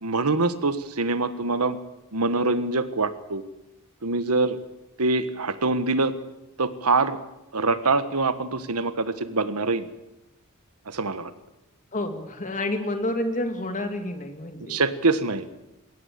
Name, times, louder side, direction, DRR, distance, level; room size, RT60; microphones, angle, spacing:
voice 1, 0.0-1.8 2.1-3.4 4.0-4.6 5.0-6.1 6.6-7.2 7.5-9.8 10.9-11.3 14.7-15.6, right 3 dB, 85° right, 12 dB, 1.5 m, -24 dB
voice 2, 11.9-14.8, left 1 dB, 35° left, 7 dB, 2.4 m, -29 dB
21.0 x 17.5 x 8.5 m, 0.93 s
head